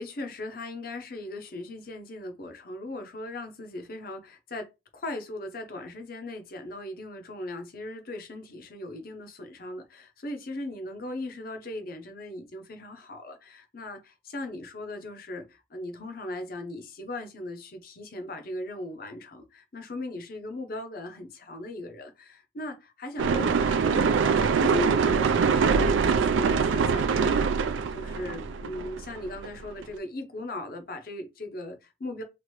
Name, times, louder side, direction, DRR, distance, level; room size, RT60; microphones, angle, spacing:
voice 1, 0.0-27.5 27.9-32.2, left 1 dB, 50° left, 0.6 m, -38 dB
sound 1, 23.2-29.8, right 5 dB, 80° right, 0.3 m, -24 dB
2.9 x 2.5 x 3.1 m
head